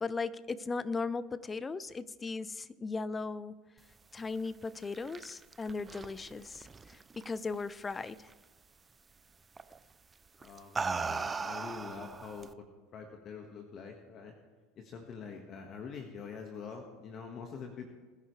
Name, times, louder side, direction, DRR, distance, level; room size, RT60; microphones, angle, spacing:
voice 1, 0.0-3.6 4.1-8.3, left 4 dB, 20° left, 18 dB, 0.6 m, -37 dB
sound 1, 4.7-7.5 7.9-8.3 9.6-9.8 10.4-12.5, right 4 dB, 20° right, 0.6 m, -38 dB
voice 2, 10.4-12.5 12.9-14.3 14.8-17.9, left 5 dB, 45° left, 3 dB, 1.6 m, -45 dB
22.0 x 10.0 x 3.3 m, 1.4 s
hypercardioid pair, 90°, 0 cm